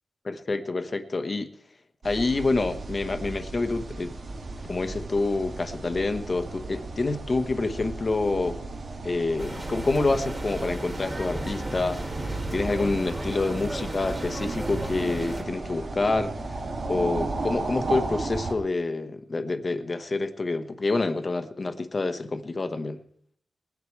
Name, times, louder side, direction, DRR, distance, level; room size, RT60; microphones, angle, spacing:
voice 1, 0.2-1.5 2.0-4.1 4.7-8.6 9.0-16.3 16.9-23.0, left 3 dB, 35° left, 9 dB, 1.0 m, -27 dB
sound 1, 2.0-18.5, right 2 dB, 55° right, 2.1 m, -35 dB
sound 2, 9.4-15.4, right 1 dB, 20° right, 2.6 m, -35 dB
20.0 x 9.7 x 4.6 m, 0.65 s
wide cardioid pair, 120°, 0 cm